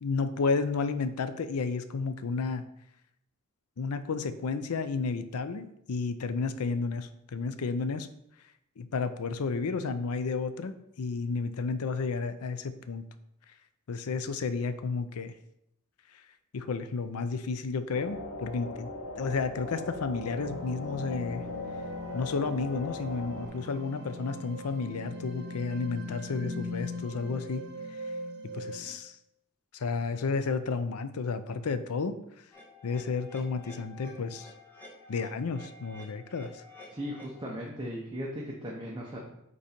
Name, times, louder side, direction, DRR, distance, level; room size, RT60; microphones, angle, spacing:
voice 1, 0.0-2.7 3.8-8.1 8.8-13.1 13.9-15.3 16.5-18.9 19.2-21.4 22.1-27.7 28.5-29.2 29.7-32.2 32.8-34.5 35.1-36.6, left 4 dB, 90° left, 11 dB, 0.5 m, -32 dB
sound 1, 17.9-23.5, left 2 dB, 70° left, 0.9 m, -39 dB
sound 2, 20.2-28.9, left 1 dB, 55° right, 1.2 m, -41 dB
sound 3, 32.5-37.5, left 2 dB, 10° left, 1.5 m, -51 dB
voice 2, 36.9-39.2, equal, 20° right, -3 dB, 0.9 m, -37 dB
5.2 x 4.1 x 5.1 m, 0.80 s
head